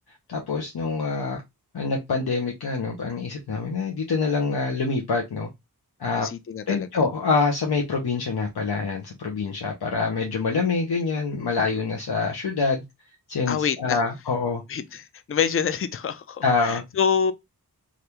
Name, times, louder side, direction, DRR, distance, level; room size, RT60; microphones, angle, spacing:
voice 1, 0.3-1.4 1.7-5.5 6.0-6.3 6.7-12.8 13.3-14.6 16.4-16.8, left 4 dB, 90° left, 0.7 m, -25 dB
voice 2, 6.2-6.9 13.5-14.0 14.7-17.3, left 7 dB, 40° left, 0.4 m, -26 dB
3.4 x 2.4 x 2.8 m
wide cardioid pair, 60°, 37 cm